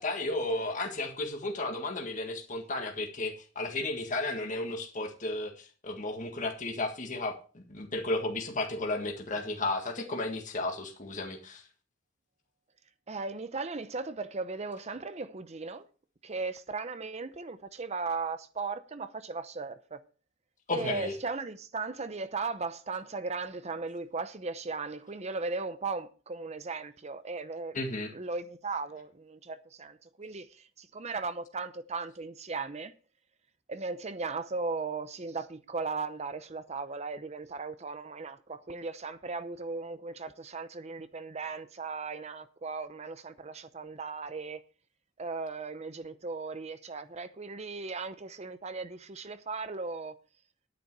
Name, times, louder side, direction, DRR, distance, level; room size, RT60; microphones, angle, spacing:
voice 1, 0.0-11.6 20.7-21.1 27.7-28.1, left 2 dB, 40° left, 1.8 m, -33 dB
voice 2, 13.1-15.8 16.2-20.0 20.7-27.7 28.1-32.9 33.7-44.6 45.2-50.1, right 4 dB, 35° right, 0.7 m, -37 dB
10.0 x 9.4 x 4.7 m
head